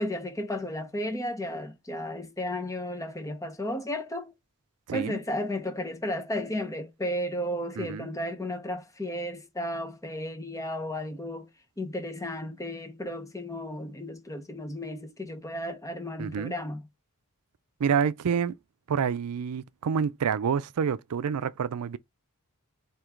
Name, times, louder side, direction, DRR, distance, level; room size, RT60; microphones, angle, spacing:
voice 1, 0.0-4.3 4.9-11.5 11.8-16.8, left 1 dB, 15° left, 1.0 m, -33 dB
voice 2, 4.9-5.2 7.8-8.1 16.2-16.5 17.8-18.6 18.9-22.0, right 7 dB, 90° right, 0.4 m, -28 dB
4.5 x 2.9 x 3.6 m
head